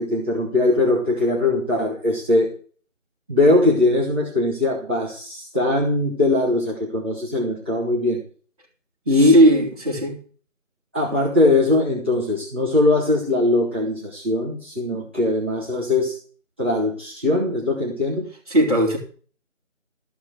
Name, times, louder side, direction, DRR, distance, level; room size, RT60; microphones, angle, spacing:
voice 1, 0.0-2.5 3.3-8.2 9.1-9.4 10.9-16.1 16.6-18.2, left 2 dB, 10° right, 1.9 m, -20 dB
voice 2, 9.1-10.2 18.5-19.0, right 1 dB, 30° right, 3.6 m, -17 dB
14.5 x 5.9 x 8.0 m
figure-of-eight pair, 175°, 39 cm